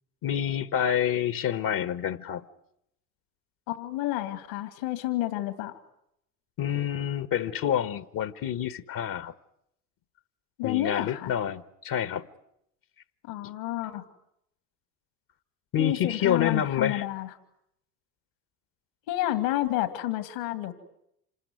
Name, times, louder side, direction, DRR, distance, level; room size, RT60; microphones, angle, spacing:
voice 1, 0.2-2.4 6.6-9.3 10.6-12.3 15.7-17.0, left 9 dB, 45° left, 1.5 m, -28 dB
voice 2, 3.7-5.8 10.6-11.3 13.3-14.0 15.8-17.3 19.1-20.7, left 15 dB, 65° left, 2.6 m, -30 dB
27.5 x 20.0 x 9.8 m
figure-of-eight pair, 65°, 46 cm